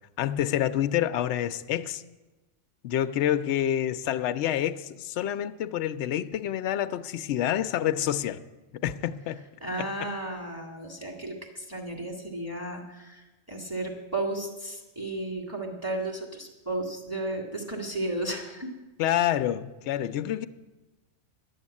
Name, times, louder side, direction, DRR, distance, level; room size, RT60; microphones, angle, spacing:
voice 1, 0.2-2.0 2.8-8.4 8.8-9.4 9.8-9.9 19.0-20.5, left 11 dB, 70° left, 0.8 m, -27 dB
voice 2, 9.6-18.7, right 2 dB, 10° right, 1.9 m, -34 dB
11.0 x 7.3 x 9.6 m
omnidirectional pair, 1.3 m